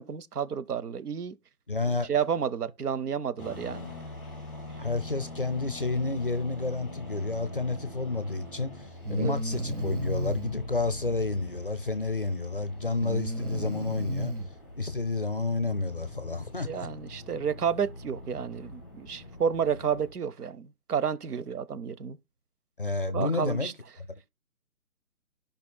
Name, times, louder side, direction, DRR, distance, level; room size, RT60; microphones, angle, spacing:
voice 1, 0.0-1.3 2.1-3.9 9.2-9.4 16.6-22.2 23.1-23.7, right 7 dB, 90° right, 0.9 m, -31 dB
voice 2, 1.7-2.1 4.8-14.3 14.8-16.9 22.8-23.7, left 3 dB, 40° left, 0.5 m, -30 dB
sound 1, 3.4-20.1, left 2 dB, 5° right, 1.1 m, -44 dB
Breathing, 8.2-8.3 9.0-10.5 13.0-14.5, right 1 dB, 70° right, 2.4 m, -33 dB
13.5 x 5.1 x 2.2 m
hypercardioid pair, 175°, 45 cm